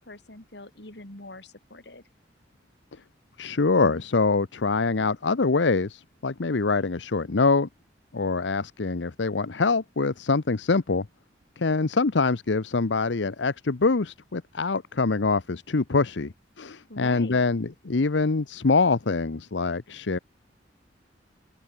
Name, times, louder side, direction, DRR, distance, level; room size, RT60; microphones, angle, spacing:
voice 1, 0.0-2.0 16.7-17.4, left 2 dB, 65° left, 3.6 m, -44 dB
voice 2, 3.4-7.7 8.1-11.1 11.6-20.2, left 4 dB, 80° left, 0.8 m, -24 dB
open air
head